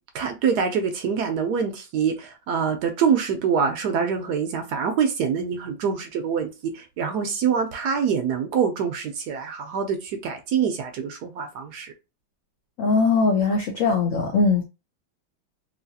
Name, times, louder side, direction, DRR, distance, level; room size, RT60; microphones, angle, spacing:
voice 1, 0.1-11.9, right 6 dB, 70° right, 1.0 m, -25 dB
voice 2, 12.8-14.7, left 4 dB, 75° left, 0.7 m, -20 dB
3.1 x 2.7 x 2.7 m
omnidirectional pair, 2.0 m